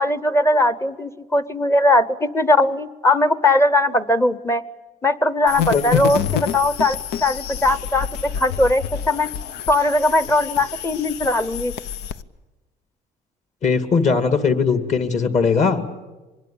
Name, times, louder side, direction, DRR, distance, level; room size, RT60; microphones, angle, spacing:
voice 1, 0.0-4.6 5.0-9.3 9.7-11.7, left 2 dB, 15° left, 15 dB, 0.9 m, -19 dB
sound 1, 5.5-12.2, left 9 dB, 90° left, 0.8 m, -28 dB
voice 2, 13.6-15.8, left 5 dB, 45° left, 8 dB, 2.4 m, -19 dB
24.5 x 21.0 x 8.8 m, 1.2 s
cardioid pair, 110°, 17 cm